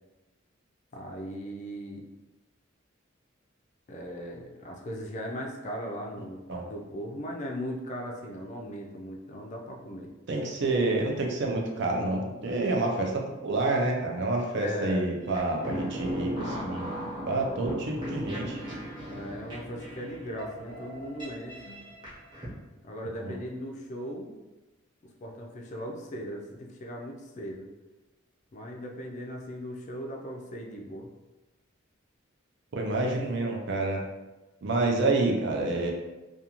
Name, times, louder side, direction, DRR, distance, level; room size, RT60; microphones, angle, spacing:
voice 1, 0.9-2.0 3.9-10.1 14.5-15.1 19.1-21.8 22.8-24.3 25.2-27.7 28.5-31.1, equal, 35° left, 0 dB, 0.4 m, -38 dB
voice 2, 10.3-17.0 17.3-18.6 23.2-23.4 32.7-34.0 34.6-35.9, right 2 dB, 60° right, 0 dB, 0.4 m, -28 dB
sound 1, 15.2-22.5, equal, 25° right, 0.9 m, -37 dB
2.5 x 2.3 x 2.9 m, 1.1 s
head